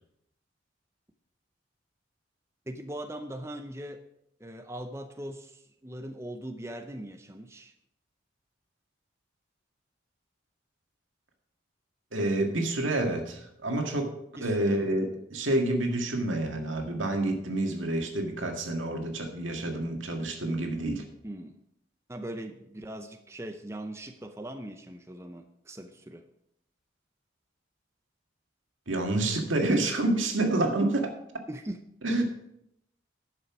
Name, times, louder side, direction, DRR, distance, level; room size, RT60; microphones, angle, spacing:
voice 1, 2.7-4.0 4.4-7.7 14.4-14.9 21.2-21.5 22.1-26.3 31.5-31.8, right 1 dB, 15° right, 6 dB, 0.6 m, -40 dB
voice 2, 12.1-21.0 28.9-31.1 32.0-32.2, right 2 dB, 85° right, 3 dB, 1.9 m, -28 dB
11.0 x 6.8 x 6.0 m, 0.78 s
head